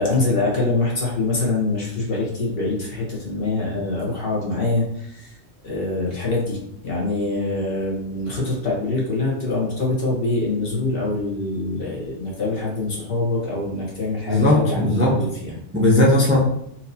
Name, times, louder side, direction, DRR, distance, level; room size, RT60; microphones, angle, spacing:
voice 1, 0.0-5.3 5.6-15.6, left 2 dB, 50° left, -4 dB, 1.3 m, -24 dB
voice 2, 14.3-15.1 15.7-16.4, left 1 dB, 15° right, -4 dB, 0.5 m, -17 dB
4.3 x 2.8 x 2.7 m, 0.73 s
omnidirectional pair, 1.2 m